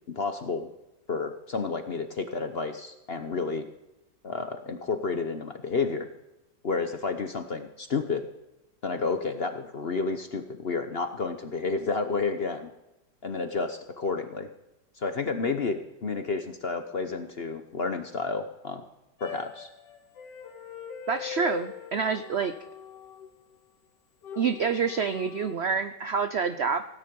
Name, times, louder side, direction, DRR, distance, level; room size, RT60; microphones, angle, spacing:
voice 1, 0.1-0.7 1.1-3.7 4.2-6.1 6.6-8.2 8.8-12.7 13.2-14.5 15.0-18.8 19.2-19.7, left 4 dB, 45° left, 7 dB, 0.8 m, -30 dB
sound 1, 19.2-23.6 24.2-25.6, left 10 dB, 70° left, 1.9 m, -41 dB
voice 2, 21.1-22.5 24.4-26.9, right 6 dB, 70° right, 9 dB, 0.6 m, -27 dB
18.0 x 9.7 x 5.3 m, 0.94 s
omnidirectional pair, 2.0 m